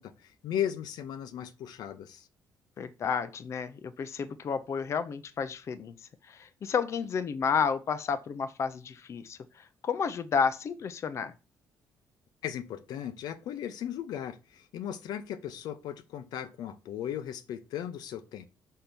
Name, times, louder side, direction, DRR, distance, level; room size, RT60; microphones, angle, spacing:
voice 1, 0.0-2.3 12.4-18.4, left 10 dB, 75° left, 0.8 m, -37 dB
voice 2, 2.8-5.9 6.2-11.3, left 6 dB, 45° left, 0.6 m, -31 dB
5.7 x 4.5 x 5.1 m
cardioid pair, 120°, 7 cm